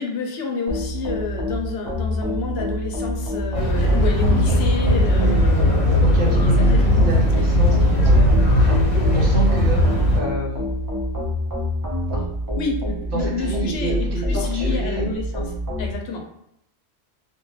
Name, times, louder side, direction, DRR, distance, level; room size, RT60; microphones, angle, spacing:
voice 1, 0.0-7.1 12.5-15.5 15.8-16.2, left 4 dB, 70° left, 1 dB, 0.8 m, -29 dB
sound 1, 0.7-15.9, left 1 dB, 25° right, 0.5 m, -26 dB
sound 2, 3.5-10.2, equal, 40° left, 0.8 m, -17 dB
voice 2, 6.0-10.7 12.1-12.3 13.1-15.1, right 2 dB, 60° right, -1 dB, 0.8 m, -30 dB
2.6 x 2.2 x 3.1 m, 0.76 s
omnidirectional pair, 1.1 m